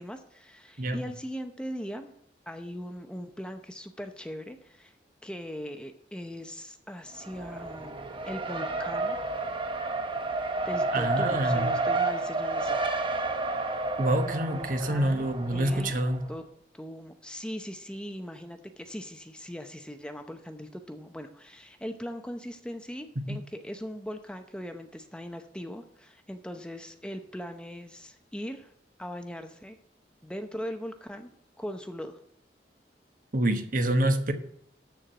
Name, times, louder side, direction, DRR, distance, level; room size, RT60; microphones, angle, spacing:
voice 1, 0.0-2.1 2.5-4.9 5.2-8.0 8.3-9.2 10.6-12.8 13.8-13.9 14.2-16.0 16.3-16.4 16.7-28.7 29.0-29.8 30.2-31.3 31.6-32.2, equal, 5° left, 0.7 m, -40 dB
Race car auto racing, 7.1-16.2, right 3 dB, 30° right, 1.0 m, -31 dB
voice 2, 10.9-11.7 14.0-16.2 33.3-34.3, right 1 dB, 50° right, 1.2 m, -26 dB
13.5 x 4.5 x 7.7 m
head